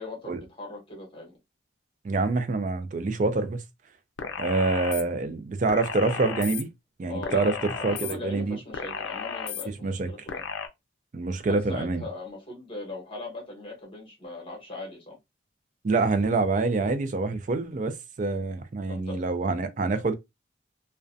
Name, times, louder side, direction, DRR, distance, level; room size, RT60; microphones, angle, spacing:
voice 1, 0.0-1.4 7.1-10.4 11.4-15.2 18.9-19.2, left 2 dB, 30° left, 1.1 m, -39 dB
voice 2, 2.0-3.6 4.4-6.7 7.0-8.6 9.8-10.1 11.1-12.0 15.8-20.1, right 3 dB, 40° right, 0.4 m, -26 dB
sound 1, 4.2-5.0 5.7-6.6 7.2-8.1 8.7-9.6 10.3-10.7, left 6 dB, 75° left, 0.4 m, -34 dB
2.4 x 2.1 x 2.5 m
head